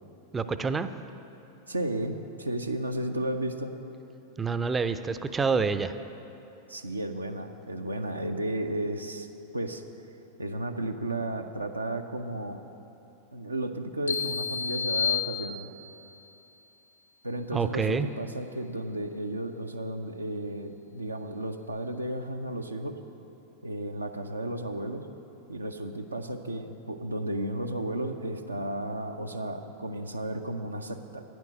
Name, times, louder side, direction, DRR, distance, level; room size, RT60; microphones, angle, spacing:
voice 1, 0.3-0.9 4.4-5.9 17.5-18.1, right 5 dB, 15° right, 11 dB, 0.4 m, -27 dB
voice 2, 1.7-3.7 6.7-9.3 9.5-9.8 10.4-12.6 13.3-15.7 17.2-23.0 23.6-25.1 25.5-31.2, right 1 dB, 80° right, 6 dB, 0.6 m, -33 dB
sound 1, 14.1-16.0, left 7 dB, 85° left, 1.1 m, -30 dB
9.6 x 9.0 x 6.4 m, 2.9 s
figure-of-eight pair, 90°, 0 cm